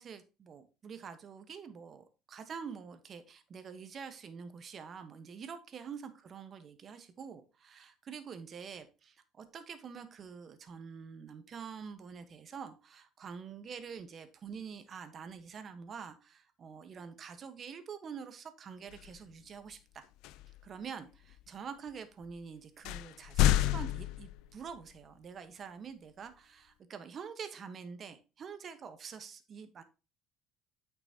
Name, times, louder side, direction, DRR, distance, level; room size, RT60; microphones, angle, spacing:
voice 1, 0.0-20.0 20.6-29.8, right 6 dB, 40° right, 10 dB, 1.3 m, -46 dB
sound 1, 18.9-19.2 20.2-20.6 21.3-21.4 22.2-22.3 22.9-24.8, left 13 dB, 80° left, 0.4 m, -30 dB
8.8 x 6.0 x 2.9 m, 0.30 s
cardioid pair, 105°, 0 cm